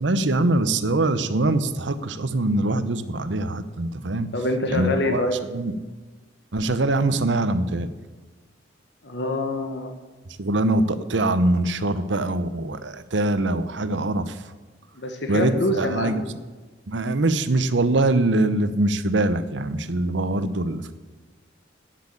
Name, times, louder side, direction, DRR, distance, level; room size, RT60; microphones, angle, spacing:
voice 1, 0.0-4.3 4.7-5.3 5.5-5.7 6.5-7.9 10.4-14.3 15.3-16.2 16.9-20.9, right 2 dB, 70° right, 12 dB, 0.9 m, -23 dB
voice 2, 4.3-5.4 9.0-9.9 15.0-16.3, left 1 dB, 65° left, 5 dB, 1.2 m, -25 dB
9.5 x 7.8 x 8.6 m, 1.3 s
head